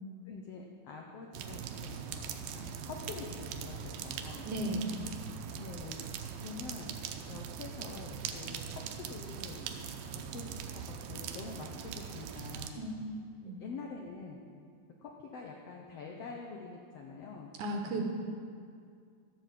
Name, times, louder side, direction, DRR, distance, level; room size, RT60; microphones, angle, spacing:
voice 1, 0.2-4.5 5.6-6.0 6.4-6.9 7.3-9.7 10.1-12.9 13.6-14.4 15.0-17.5 17.8-18.0, left 4 dB, 90° left, 1 dB, 1.3 m, -46 dB
sound 1, 1.3-12.7, right 7 dB, 85° right, 2.6 m, -41 dB
voice 2, 4.4-4.9 12.8-12.9 13.3-13.6 17.6-18.0, right 1 dB, 70° right, 2 dB, 2.2 m, -35 dB
13.0 x 8.0 x 7.5 m, 2.3 s
omnidirectional pair, 4.1 m